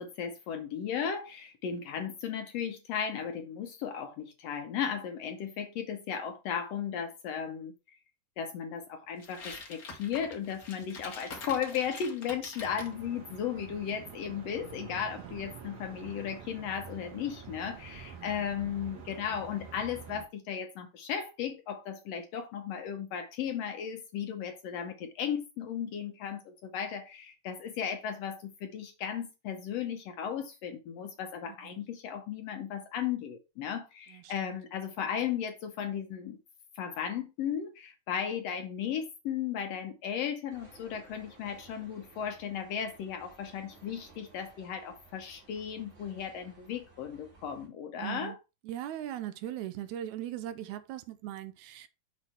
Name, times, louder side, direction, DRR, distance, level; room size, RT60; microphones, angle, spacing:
voice 1, 0.0-7.7 8.4-36.4 36.7-48.4, left 8 dB, 70° left, 1.6 m, -35 dB
sound 1, 9.2-12.9, left 4 dB, 50° left, 1.1 m, -45 dB
sound 2, 12.6-20.2, right 6 dB, 55° right, 2.2 m, -47 dB
voice 2, 34.1-34.6 48.0-48.4 48.6-51.9, right 12 dB, 80° right, 1.9 m, -39 dB
sound 3, 40.5-47.7, right 3 dB, 40° right, 2.1 m, -57 dB
6.4 x 3.1 x 5.5 m
omnidirectional pair, 3.5 m